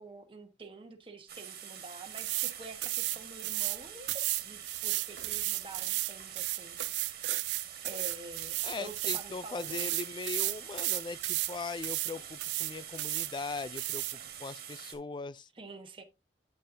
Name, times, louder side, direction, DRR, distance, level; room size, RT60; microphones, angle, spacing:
voice 1, 0.0-6.8 7.8-9.9 15.5-16.0, right 2 dB, 30° right, 1.1 m, -48 dB
sound 1, 1.3-14.9, right 9 dB, 55° right, 1.7 m, -46 dB
sound 2, 2.2-2.5 2.8-3.8 4.1-9.3 9.6-11.5 11.8-12.1 12.4-13.3 13.8-14.2, right 19 dB, 75° right, 0.3 m, -33 dB
voice 2, 8.6-15.5, left 4 dB, 25° left, 0.3 m, -40 dB
9.3 x 6.5 x 2.7 m
head